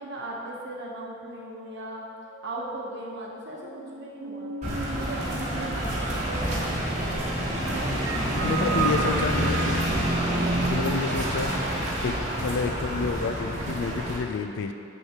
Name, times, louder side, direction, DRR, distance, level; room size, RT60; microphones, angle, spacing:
voice 1, 0.0-2.0 2.4-4.5 4.9-6.9 7.7-9.7 10.6-11.0, right 2 dB, 60° right, -3 dB, 1.0 m, -38 dB
sound 1, 1.7-11.3, right 4 dB, 75° right, 0.5 m, -37 dB
sound 2, 4.6-14.2, right 1 dB, 35° right, 1.2 m, -27 dB
voice 2, 8.4-9.8 10.7-11.5 12.0-14.7, left 5 dB, 60° left, 8 dB, 0.3 m, -29 dB
7.3 x 6.5 x 2.9 m, 2.5 s
head